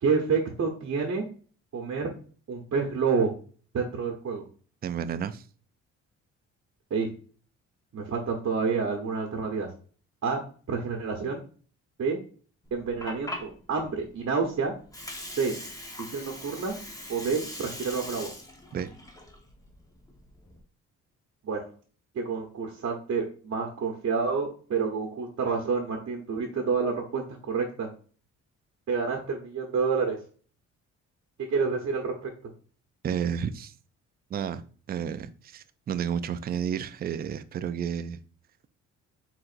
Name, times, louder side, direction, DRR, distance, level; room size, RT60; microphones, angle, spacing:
voice 1, 0.0-1.2 1.7-2.1 2.5-3.3 3.7-4.4 6.9-7.1 7.9-9.7 10.2-10.4 10.7-11.4 12.0-12.2 12.7-14.7 15.4-15.6 16.1-16.7 17.1-18.3 21.4-21.6 22.1-27.9 28.9-30.2 31.5-32.3, right 5 dB, 50° right, 1.0 m, -28 dB
voice 2, 4.8-5.4 18.7-18.9 33.0-33.7 34.3-34.6 34.9-38.2, right 8 dB, 30° right, 0.4 m, -31 dB
Water, 12.7-20.6, left 1 dB, 10° left, 1.1 m, -41 dB
4.7 x 3.8 x 2.5 m
cardioid pair, 90°, 30 cm